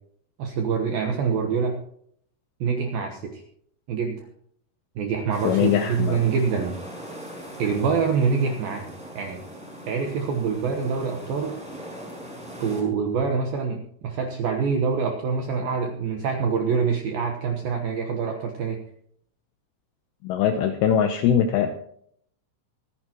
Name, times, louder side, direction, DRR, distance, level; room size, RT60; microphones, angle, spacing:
voice 1, 0.4-1.8 2.6-3.4 3.9-4.3 5.0-6.8 7.6-9.4 9.9-11.6 12.6-18.8, right 5 dB, 75° right, 3 dB, 2.2 m, -25 dB
sound 1, 5.3-12.8, equal, ahead, 5.0 m, -40 dB
voice 2, 5.4-6.2 20.2-21.7, left 9 dB, 80° left, 7 dB, 2.5 m, -21 dB
25.5 x 10.5 x 3.0 m, 0.67 s
omnidirectional pair, 5.9 m